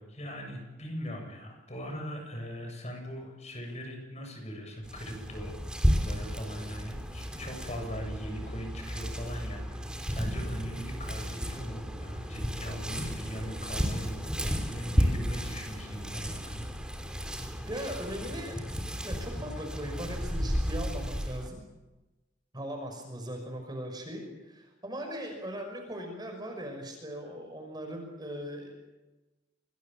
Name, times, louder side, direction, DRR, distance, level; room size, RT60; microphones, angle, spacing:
voice 1, 0.0-5.5 5.9-16.7, equal, 35° left, 3 dB, 7.9 m, -40 dB
sound 1, 4.8-21.5, equal, 5° right, 3.1 m, -33 dB
voice 2, 17.6-21.6 22.5-28.7, equal, 20° right, 3 dB, 5.8 m, -39 dB
28.0 x 20.5 x 7.4 m, 1.1 s
head